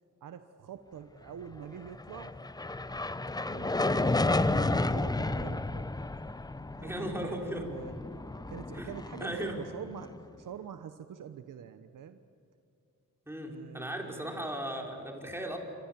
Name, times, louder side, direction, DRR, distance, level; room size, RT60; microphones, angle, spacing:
voice 1, 0.2-2.4 3.5-5.9 6.8-8.0 8.5-12.2 13.4-14.5, right 8 dB, 75° right, 9 dB, 1.1 m, -44 dB
sound 1, 1.9-10.3, left 2 dB, 10° left, 0.7 m, -32 dB
voice 2, 6.8-7.7 8.7-8.9 9.2-9.5 13.3-15.6, equal, 10° right, 1 dB, 5.0 m, -37 dB
29.0 x 25.5 x 7.5 m, 2.7 s
cardioid pair, 90°, 32 cm